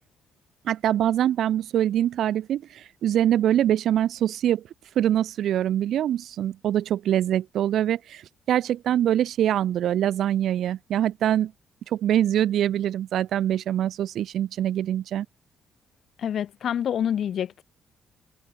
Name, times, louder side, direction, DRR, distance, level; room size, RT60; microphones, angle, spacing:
voice 1, 0.6-4.6 4.9-11.5 11.9-15.2, right 11 dB, 70° right, 3.0 m, -24 dB
voice 2, 16.2-17.6, left 9 dB, 65° left, 1.5 m, -27 dB
cardioid pair, 90°, 0 cm